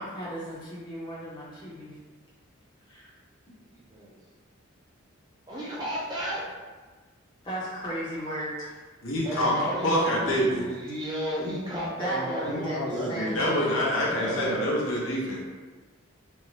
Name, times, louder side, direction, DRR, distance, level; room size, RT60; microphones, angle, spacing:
voice 1, 0.0-1.9 2.9-3.1 7.4-8.8 12.0-13.8, equal, 20° left, -7 dB, 0.7 m, -35 dB
voice 2, 3.7-4.1 5.5-6.4 9.2-13.2 14.0-14.7, equal, 20° right, -6 dB, 0.5 m, -33 dB
voice 3, 9.0-10.7 12.5-15.4, equal, 70° left, -4 dB, 0.7 m, -27 dB
2.6 x 2.1 x 3.2 m, 1.3 s
head